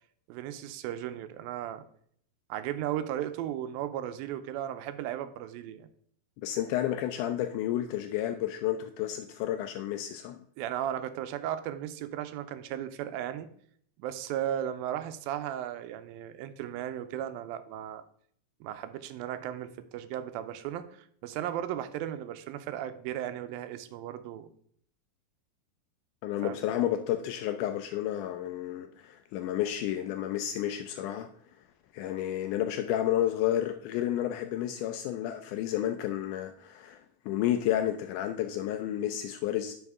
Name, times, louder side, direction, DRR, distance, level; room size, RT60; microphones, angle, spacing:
voice 1, 0.3-1.8 2.5-5.9 10.6-13.5 14.0-18.0 18.6-24.5 26.4-26.6, right 11 dB, 90° right, 10 dB, 2.4 m, -36 dB
voice 2, 6.4-10.4 26.2-31.3 31.9-39.7, left 12 dB, 85° left, 8 dB, 1.8 m, -31 dB
11.0 x 5.3 x 3.5 m, 0.63 s
omnidirectional pair, 4.1 m